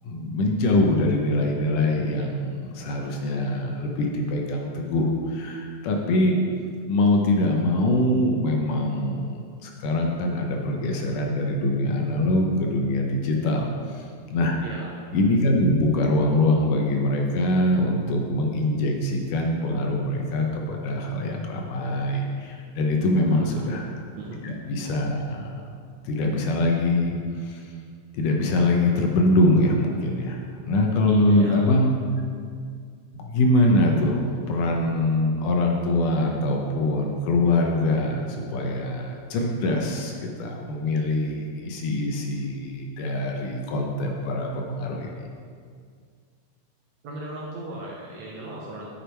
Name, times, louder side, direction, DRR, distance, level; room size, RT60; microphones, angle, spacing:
voice 1, 0.0-6.4 6.9-14.6 15.1-23.9 24.4-25.7 26.0-27.7 28.1-31.9 33.1-45.1, left 1 dB, 75° left, 1 dB, 2.4 m, -23 dB
voice 2, 23.3-23.8 24.2-24.4 31.1-31.6 47.0-48.9, right 1 dB, 65° right, -4 dB, 1.9 m, -37 dB
9.6 x 6.9 x 4.5 m, 2.1 s
omnidirectional pair, 4.0 m